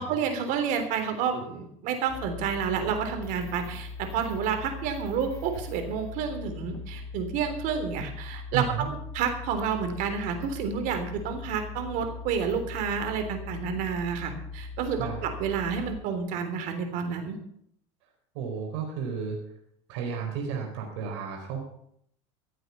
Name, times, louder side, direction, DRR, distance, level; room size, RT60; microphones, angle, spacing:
voice 1, 0.0-17.4, right 7 dB, 65° right, 6 dB, 3.4 m, -30 dB
sound 1, 2.1-16.0, left 4 dB, 20° left, 2.7 m, -40 dB
voice 2, 8.5-8.9 15.0-15.2 18.3-19.4 19.9-21.6, right 6 dB, 80° right, 1 dB, 4.4 m, -32 dB
16.0 x 8.1 x 7.1 m, 0.70 s
supercardioid pair, 115°, 15 cm